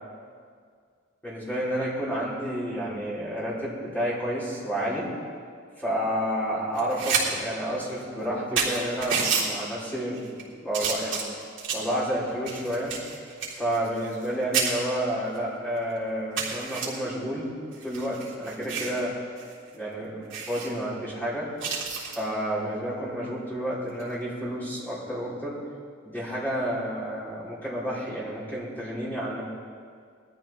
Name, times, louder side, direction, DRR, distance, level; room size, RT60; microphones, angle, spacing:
voice 1, 1.2-5.1 5.8-11.2 11.7-13.0 13.5-19.2 19.7-21.5 22.0-25.6 26.0-29.4, equal, 10° left, -8 dB, 4.0 m, -30 dB
sound 1, 6.7-7.2 7.6-7.7 8.2-8.3 8.6-9.5 10.1-10.4 10.7-11.9 12.5-14.3 14.5-14.7 15.3-15.4 15.8-15.9 16.4-16.9 17.7-19.0 19.4-19.5 19.8-19.9 20.3-20.7 21.6-22.2 23.9-24.1, right 6 dB, 70° right, 3.5 m, -29 dB
20.0 x 13.5 x 3.7 m, 2.1 s
head